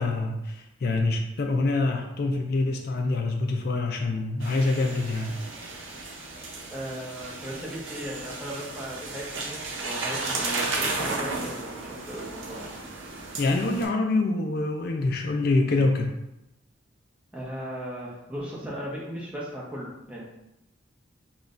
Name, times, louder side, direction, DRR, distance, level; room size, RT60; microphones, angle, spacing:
voice 1, 0.0-5.3 13.4-16.2, left 2 dB, 55° left, 3 dB, 0.4 m, -25 dB
sound 1, 4.4-13.8, right 3 dB, 90° right, 0.8 m, -34 dB
voice 2, 6.7-12.6 17.3-20.2, equal, 5° right, -6 dB, 0.9 m, -37 dB
5.9 x 2.3 x 2.5 m, 0.88 s
head